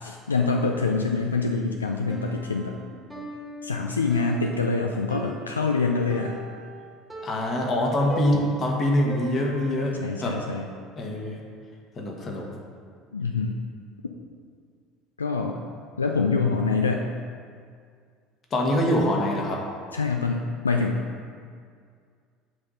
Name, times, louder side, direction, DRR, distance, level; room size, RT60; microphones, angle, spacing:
voice 1, 0.0-2.8 3.6-6.4 8.3-8.5 10.0-10.7 13.1-13.6 15.2-15.6 16.0-17.1 19.9-21.0, left 4 dB, 85° left, 2 dB, 0.3 m, -25 dB
Piano, 2.1-10.0, right 1 dB, ahead, 1.4 m, -40 dB
voice 2, 7.2-10.4 11.0-11.4 12.0-12.5 18.5-19.6, left 1 dB, 40° left, -1 dB, 1.4 m, -24 dB
7.8 x 3.6 x 5.5 m, 2.1 s
figure-of-eight pair, 65°, 0 cm